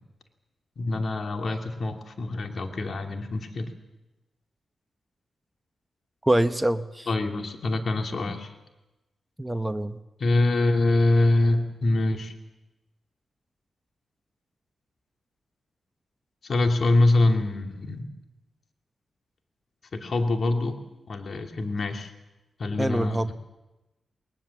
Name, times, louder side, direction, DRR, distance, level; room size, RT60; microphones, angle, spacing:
voice 1, 0.8-3.7 7.1-8.5 10.2-12.3 16.4-18.1 19.9-20.8 21.1-22.1 22.6-23.2, left 2 dB, 60° left, 4 dB, 2.7 m, -24 dB
voice 2, 6.2-7.1 9.4-10.0 22.8-23.3, right 1 dB, 10° right, 10 dB, 1.0 m, -25 dB
20.5 x 20.0 x 7.2 m, 1.0 s
cardioid pair, 50°, 0 cm